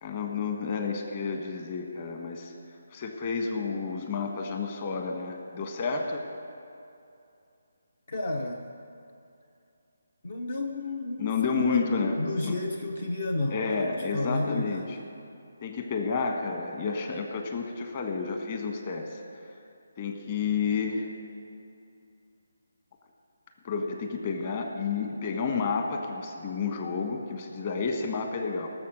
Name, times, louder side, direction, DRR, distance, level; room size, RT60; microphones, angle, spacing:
voice 1, 0.0-2.5 2.9-6.2 11.2-12.2 12.4-12.5 13.5-15.0 15.6-19.2 20.0-21.1 23.6-28.7, left 5 dB, 35° left, 4 dB, 1.5 m, -30 dB
voice 2, 8.1-8.7 10.2-11.9 12.2-14.9, left 2 dB, 60° left, 3 dB, 0.9 m, -32 dB
18.0 x 7.2 x 6.6 m, 2.6 s
figure-of-eight pair, 150°, 0 cm